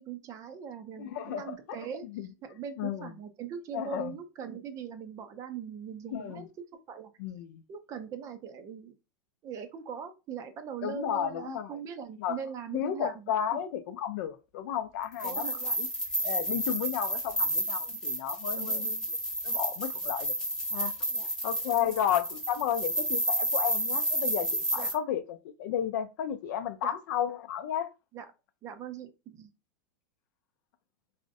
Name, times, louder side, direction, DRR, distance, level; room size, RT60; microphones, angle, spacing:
voice 1, 0.0-2.1 2.4-6.4 6.9-7.1 7.7-8.9 9.4-13.1 13.5-13.6 15.2-15.8 17.9-18.0 18.6-18.9 21.1-21.3 21.7-22.0 24.8-24.9 26.8-26.9 28.1-28.2 28.6-29.5, right 8 dB, 30° right, 0.4 m, -41 dB
voice 2, 1.0-2.3 2.8-3.1 3.7-4.2 6.1-6.5 7.2-7.6 10.8-11.8 12.2-12.4 12.7-15.4 15.8-15.9 16.2-19.2 19.4-20.3 20.7-20.9 21.4-27.9, left 10 dB, 65° left, 0.4 m, -33 dB
sound 1, 15.1-24.9, right 1 dB, 5° left, 0.8 m, -31 dB
2.4 x 2.0 x 2.5 m
supercardioid pair, 130°, 11 cm